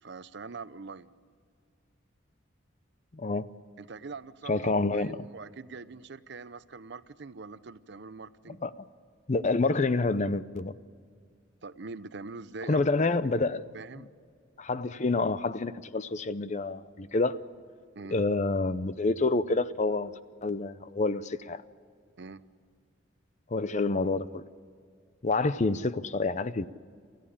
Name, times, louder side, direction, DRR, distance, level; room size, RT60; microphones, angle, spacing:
voice 1, 0.0-1.1 3.8-8.6 11.6-12.9 13.4-14.1 17.9-18.2 22.2-22.4, right 4 dB, 60° right, 15 dB, 0.7 m, -43 dB
voice 2, 3.1-3.5 4.5-5.2 8.6-8.7 9.3-10.7 12.7-13.6 14.0-14.1 14.6-17.4 18.1-20.1 20.4-21.6 23.5-24.4 25.2-26.7, left 3 dB, 40° left, 15 dB, 0.6 m, -28 dB
28.0 x 14.5 x 8.7 m, 2.1 s
head